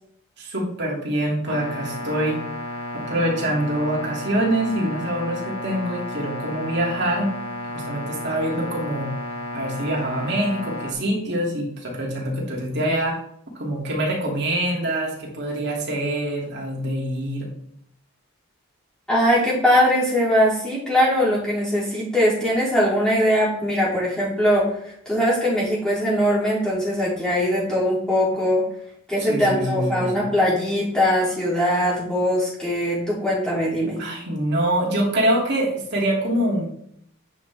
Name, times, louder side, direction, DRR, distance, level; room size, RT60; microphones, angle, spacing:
voice 1, 0.4-2.4 2.9-7.3 7.6-9.1 9.5-13.2 13.5-17.5 29.2-30.3 34.0-36.7, right 1 dB, 50° right, -3 dB, 2.8 m, -25 dB
sound 1, 1.5-10.9, left 2 dB, 90° left, 1.3 m, -33 dB
voice 2, 19.1-28.6 29.1-34.0, equal, 5° left, -7 dB, 3.2 m, -21 dB
9.2 x 6.0 x 3.6 m, 0.68 s
head